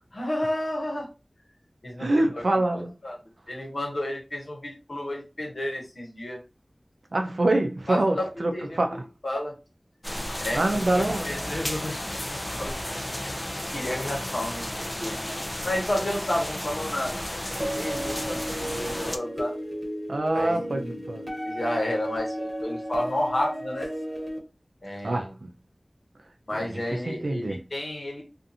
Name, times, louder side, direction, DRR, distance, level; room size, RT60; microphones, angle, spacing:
voice 1, 0.1-1.1 1.8-2.1 3.0-3.1 3.5-6.4 7.9-8.8 9.2-9.5 10.4-10.6 10.9-12.8 13.2-15.2 15.6-17.1 17.5-19.5 20.3-21.0 21.4-23.9 24.8-25.3 26.5-28.2, left 1 dB, 75° left, 1.0 m, -31 dB
voice 2, 2.0-2.9 7.1-9.0 10.5-11.2 20.1-21.3 25.0-25.5 26.5-27.6, right 2 dB, 85° right, 0.4 m, -25 dB
sound 1, 10.0-19.2, left 1 dB, 30° left, 0.4 m, -33 dB
sound 2, 17.6-24.4, equal, 30° right, 1.1 m, -34 dB
2.5 x 2.5 x 2.7 m
wide cardioid pair, 45°, 0 cm